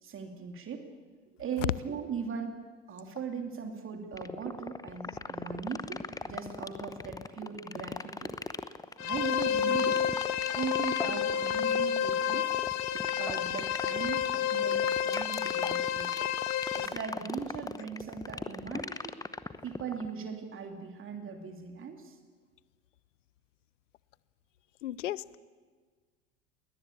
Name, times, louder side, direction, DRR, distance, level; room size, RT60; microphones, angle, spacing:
voice 1, 0.0-0.9 1.4-2.6 2.9-8.4 9.0-10.1 10.5-12.6 12.9-16.3 16.8-19.1 19.6-22.2, right 6 dB, 30° right, 4 dB, 2.9 m, -39 dB
sound 1, 4.1-20.1, left 3 dB, 10° left, 0.9 m, -38 dB
sound 2, 9.0-16.9, left 9 dB, 45° left, 1.6 m, -30 dB
voice 2, 24.8-25.4, left 13 dB, 70° left, 21 dB, 0.8 m, -36 dB
21.0 x 20.0 x 8.6 m, 1.5 s
figure-of-eight pair, 75°, 38 cm